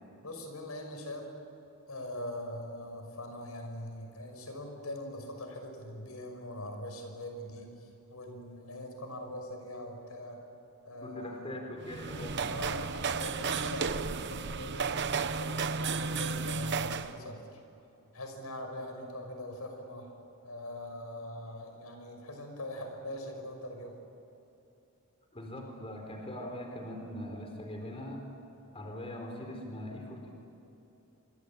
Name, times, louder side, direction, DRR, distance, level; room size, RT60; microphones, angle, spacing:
voice 1, 0.2-1.3 1.9-10.5 10.8-11.5 12.5-15.0 15.4-17.6 18.1-20.2 20.4-24.0, left 1 dB, 85° left, 4 dB, 5.8 m, -42 dB
voice 2, 11.0-12.4 25.3-28.2 28.7-30.3, left 1 dB, 25° left, 2 dB, 4.2 m, -41 dB
sound 1, 11.8-17.2, right 5 dB, 55° right, 1.0 m, -33 dB
26.5 x 25.5 x 8.6 m, 2.9 s
head